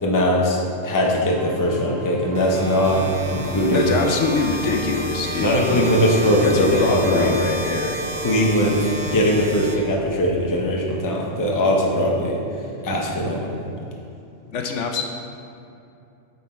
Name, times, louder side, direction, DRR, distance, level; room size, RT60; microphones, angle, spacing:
voice 1, 0.0-4.1 5.4-7.3 8.2-12.4 12.8-13.7, equal, 20° left, -1 dB, 0.7 m, -20 dB
sound 1, 1.3-7.4, left 1 dB, 80° right, 1.1 m, -34 dB
sound 2, 2.3-10.4, equal, 30° right, 0.6 m, -31 dB
voice 2, 3.7-5.8 6.4-8.0 14.5-15.0, left 4 dB, 70° left, 3 dB, 0.9 m, -24 dB
8.9 x 4.3 x 4.3 m, 2.7 s
omnidirectional pair, 1.3 m